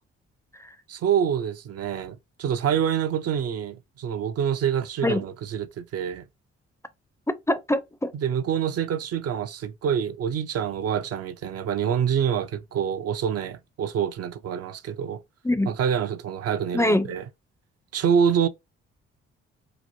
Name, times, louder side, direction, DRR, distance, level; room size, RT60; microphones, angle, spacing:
voice 1, 0.9-6.3 8.1-15.2 15.7-17.2 17.9-18.5, right 8 dB, 55° right, 0.4 m, -26 dB
voice 2, 7.5-8.1 15.4-15.7 16.7-17.1, left 1 dB, 10° left, 0.4 m, -23 dB
2.9 x 2.1 x 2.6 m
supercardioid pair, 50°, 29 cm